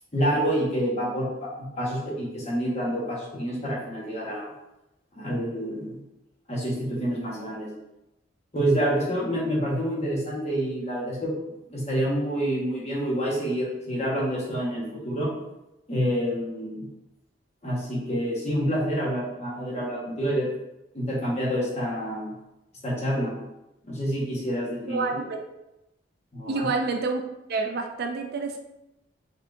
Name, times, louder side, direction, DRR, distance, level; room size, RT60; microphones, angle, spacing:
voice 1, 0.1-4.5 5.1-6.0 6.5-7.7 8.5-11.3 11.7-15.3 15.9-16.9 17.6-20.5 20.9-22.3 22.8-23.3 23.8-25.1 26.3-26.7, equal, 35° left, -4 dB, 1.2 m, -27 dB
voice 2, 24.9-25.4 26.5-27.2 27.5-28.6, right 4 dB, 55° right, 4 dB, 0.4 m, -28 dB
4.3 x 3.4 x 2.5 m, 0.90 s
head